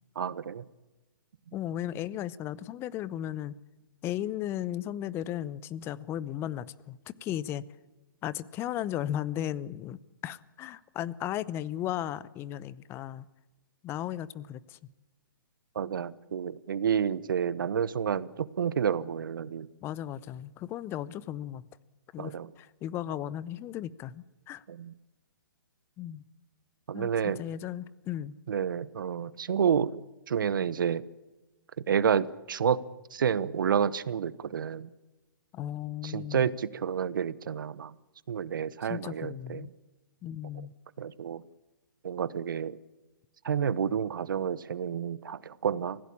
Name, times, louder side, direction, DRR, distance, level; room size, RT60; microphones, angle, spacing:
voice 1, 0.2-0.6 15.7-19.7 22.2-22.5 24.7-24.9 26.9-27.4 28.5-29.9 30.3-31.0 31.9-32.8 33.1-34.9 36.0-37.9 38.3-39.7 41.0-41.4 42.0-42.8 43.4-46.0, right 7 dB, 70° right, 18 dB, 1.0 m, -29 dB
voice 2, 1.5-3.5 4.0-7.6 8.2-13.2 13.8-14.8 19.8-21.6 22.1-24.6 26.0-26.2 26.9-28.3 35.5-36.5 38.8-39.7 40.2-40.7, left 12 dB, 20° left, 19 dB, 0.7 m, -36 dB
25.0 x 16.0 x 8.7 m, 1.1 s
hypercardioid pair, 140°, 11 cm